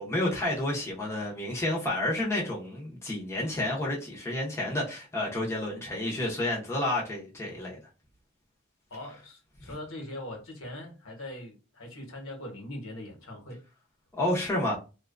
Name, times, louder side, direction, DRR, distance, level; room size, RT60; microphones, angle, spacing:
voice 1, 0.0-7.8 14.2-14.8, left 1 dB, 15° left, 0.7 m, -30 dB
voice 2, 8.9-13.6, left 1 dB, 75° left, 1.0 m, -41 dB
2.6 x 2.2 x 2.4 m
head